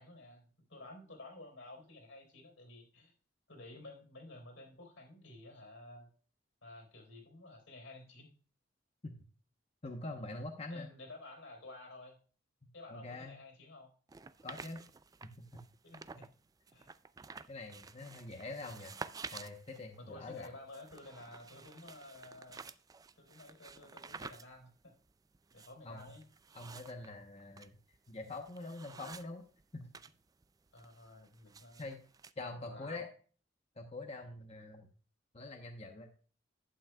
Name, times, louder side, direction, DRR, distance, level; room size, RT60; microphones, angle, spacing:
voice 1, 0.0-3.1 3.5-6.1 6.6-8.3 10.1-10.3 10.7-12.2 12.7-13.9 15.8-16.3 16.7-16.9 20.0-22.6 23.2-24.9 25.5-26.3 30.7-31.9 32.4-33.1, left 2 dB, 80° left, 3 dB, 4.0 m, -52 dB
voice 2, 9.8-10.9 12.6-13.4 14.4-14.8 15.2-15.6 17.5-20.5 25.8-26.1 26.5-27.8 28.1-29.4 29.7-29.9 31.8-32.0 32.4-33.1 33.8-34.9 35.3-36.1, left 2 dB, 35° left, 3 dB, 0.9 m, -45 dB
sound 1, 14.1-16.3 16.7-30.1 30.4-32.3, right 4 dB, 20° right, 0.4 m, -51 dB
11.0 x 9.1 x 2.3 m, 0.41 s
head